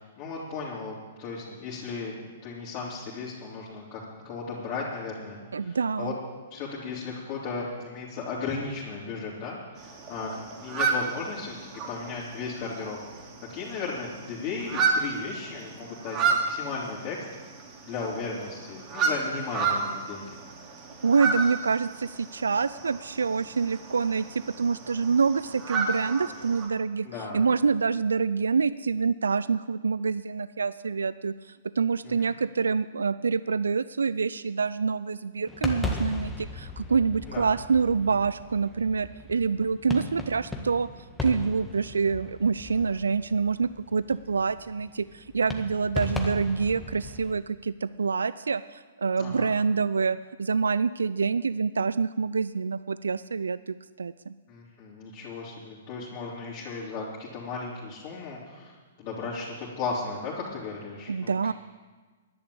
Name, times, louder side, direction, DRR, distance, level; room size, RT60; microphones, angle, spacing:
voice 1, 0.0-6.1 6.5-10.3 10.6-11.6 11.9-17.2 17.8-20.4 27.0-27.5 32.0-32.3 37.3-37.5 49.2-49.5 54.5-61.5, left 4 dB, 35° left, -6 dB, 3.5 m, -36 dB
voice 2, 5.5-6.1 21.0-27.1 27.3-40.9 41.2-54.3 61.1-61.5, right 5 dB, 75° right, 16 dB, 0.3 m, -26 dB
sound 1, 9.8-26.7, right 4 dB, 30° right, 2.9 m, -32 dB
sound 2, 35.5-47.3, left 2 dB, 10° left, 1.7 m, -37 dB
11.5 x 10.5 x 8.6 m, 1.4 s
figure-of-eight pair, 115°, 0 cm